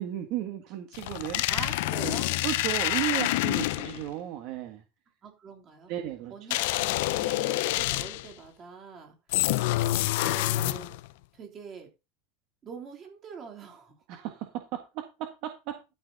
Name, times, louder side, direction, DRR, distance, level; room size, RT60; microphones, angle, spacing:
voice 1, 0.0-1.7 2.0-2.1 2.4-4.8 5.9-6.6 14.1-15.8, right 13 dB, 50° right, 6 dB, 1.5 m, -35 dB
sound 1, 0.9-4.1 6.5-8.3 9.3-11.1, left 17 dB, 65° left, 0.6 m, -27 dB
voice 2, 1.5-2.4 2.8-3.5 5.2-5.9 6.3-9.2 9.5-9.8 10.2-10.9 11.3-11.9 12.6-14.0, right 6 dB, 25° right, 2 dB, 3.1 m, -44 dB
12.5 x 6.2 x 4.0 m, 0.27 s
supercardioid pair, 160°, 0 cm